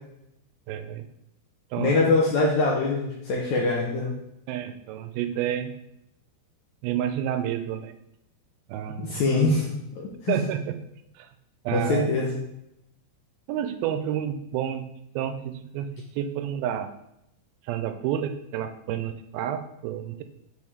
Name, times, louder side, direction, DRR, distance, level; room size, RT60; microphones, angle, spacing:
voice 1, 0.7-1.1 1.7-2.1 4.5-5.7 6.8-8.0 8.7-9.2 10.3-10.8 11.2-11.3 11.7-12.1 13.5-14.9 15.2-15.9 16.2-16.9 17.7-20.2, right 10 dB, 85° right, 9 dB, 2.4 m, -29 dB
voice 2, 1.8-4.1 9.0-9.7 10.0-10.4 11.7-12.4, left 3 dB, 80° left, -3 dB, 1.7 m, -23 dB
7.1 x 4.2 x 3.2 m, 0.82 s
omnidirectional pair, 4.3 m